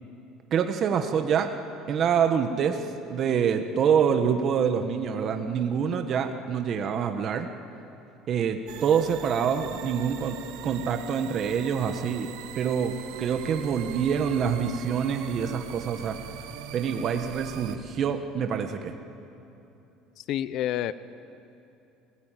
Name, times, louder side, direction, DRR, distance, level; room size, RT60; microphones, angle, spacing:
voice 1, 0.5-1.5 1.9-7.5 8.3-12.3 12.5-12.9 13.2-16.2 16.7-18.9, right 7 dB, 45° right, 6 dB, 1.4 m, -26 dB
sound 1, 8.7-17.8, right 10 dB, 85° right, 1.5 m, -41 dB
voice 2, 20.2-20.9, left 12 dB, 60° left, 15 dB, 0.9 m, -28 dB
28.0 x 17.5 x 9.1 m, 2.9 s
cardioid pair, 135°, 0 cm